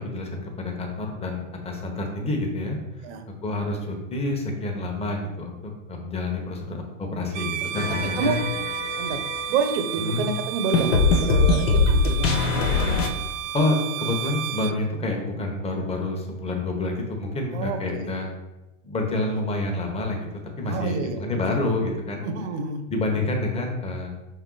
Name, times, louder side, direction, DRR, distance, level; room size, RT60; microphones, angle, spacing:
voice 1, 0.0-3.0 3.4-8.4 10.0-10.2 13.5-18.3 18.8-22.2 22.9-24.1, left 2 dB, 15° left, 1 dB, 1.2 m, -28 dB
Bowed string instrument, 7.3-14.8, right 11 dB, 75° right, 0.5 m, -32 dB
sound 1, 7.7-9.6 10.7-13.1, left 3 dB, 75° left, 1.0 m, -22 dB
voice 2, 9.5-12.7 17.5-18.1 20.6-21.2 21.5-21.6 22.2-22.8, right 5 dB, 60° right, 7 dB, 1.0 m, -28 dB
5.5 x 4.5 x 4.0 m, 0.98 s
supercardioid pair, 130°, 38 cm